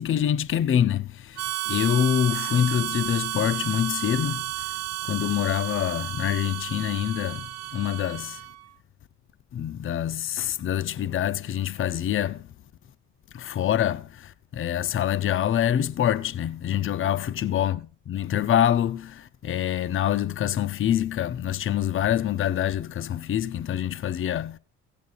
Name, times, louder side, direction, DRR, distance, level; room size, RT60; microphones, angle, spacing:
voice 1, 0.0-8.4 9.5-12.5 13.3-24.6, left 10 dB, 40° left, 0.6 m, -26 dB
Harmonica, 1.4-8.6, right 16 dB, 55° right, 0.5 m, -32 dB
16.0 x 15.5 x 2.5 m
supercardioid pair, 65°, 30 cm